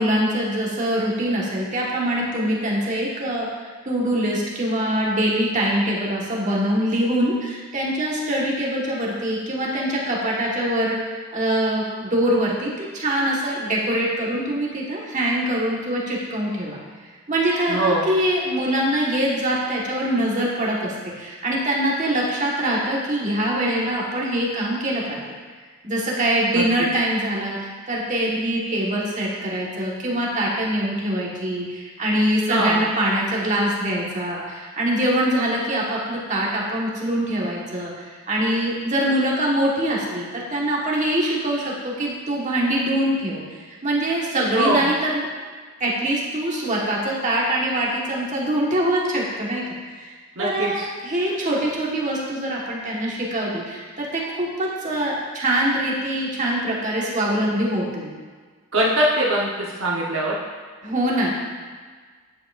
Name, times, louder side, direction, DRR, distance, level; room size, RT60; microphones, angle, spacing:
voice 1, 0.0-3.5 3.8-16.8 17.3-25.2 25.8-45.3 45.8-50.1 50.4-58.1 60.8-61.4, right 1 dB, 35° right, -4 dB, 1.5 m, -23 dB
voice 2, 17.7-18.1 26.5-26.6 32.5-32.8 44.5-44.9 50.4-50.9 58.7-60.3, right 1 dB, 65° right, -4 dB, 1.1 m, -22 dB
11.0 x 7.8 x 2.5 m, 1.5 s
head